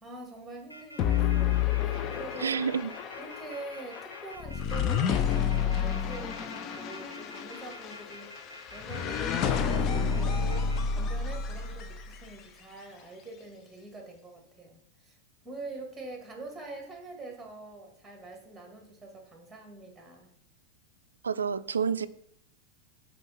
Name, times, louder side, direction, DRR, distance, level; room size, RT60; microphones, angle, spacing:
voice 1, 0.0-2.6 3.2-8.3 8.7-15.2 15.4-20.3, right 2 dB, 5° right, 2 dB, 1.8 m, -45 dB
sound 1, 0.7-10.8, equal, 90° left, 1.1 m, -48 dB
sound 2, 1.0-12.3, left 7 dB, 35° left, 0.5 m, -30 dB
voice 2, 2.4-2.9 21.2-22.1, right 6 dB, 70° right, 14 dB, 0.3 m, -29 dB
5.3 x 4.3 x 5.6 m, 0.69 s
figure-of-eight pair, 90°, 0 cm